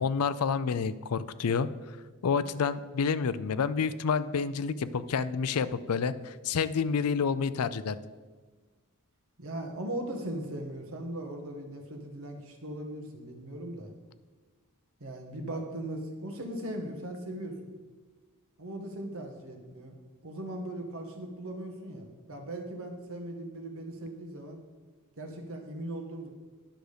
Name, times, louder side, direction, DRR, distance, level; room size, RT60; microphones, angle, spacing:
voice 1, 0.0-1.7 2.2-8.0, left 6 dB, 75° left, 15 dB, 0.5 m, -29 dB
voice 2, 9.4-13.9 15.0-17.7 18.6-19.9 20.2-24.6 25.2-26.3, right 1 dB, 65° right, 3 dB, 1.5 m, -39 dB
10.5 x 6.3 x 5.1 m, 1.4 s
head